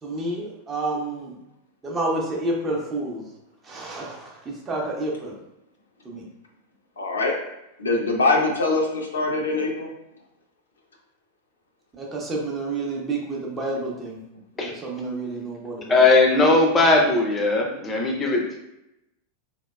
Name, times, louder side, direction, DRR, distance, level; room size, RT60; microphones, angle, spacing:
voice 1, 0.0-1.4 1.8-3.3 3.6-5.4 6.0-6.2 11.9-14.2 14.5-16.0, right 2 dB, 20° right, -2 dB, 0.7 m, -29 dB
voice 2, 7.0-7.3 7.8-9.9, left 3 dB, 70° left, 1 dB, 0.4 m, -23 dB
voice 3, 15.9-18.6, left 3 dB, 20° left, 1 dB, 0.5 m, -19 dB
3.9 x 2.1 x 2.2 m, 0.89 s
figure-of-eight pair, 90°, 0 cm